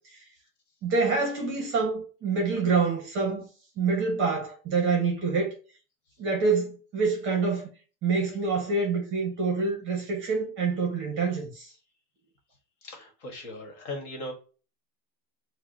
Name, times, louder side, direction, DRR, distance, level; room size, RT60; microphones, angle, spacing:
voice 1, 0.8-3.5 3.8-5.5 6.2-7.7 8.0-11.7, right 4 dB, 25° right, 0.7 m, -26 dB
voice 2, 12.8-14.3, left 1 dB, 50° left, 1.5 m, -38 dB
4.5 x 2.1 x 2.6 m
supercardioid pair, 155°, 48 cm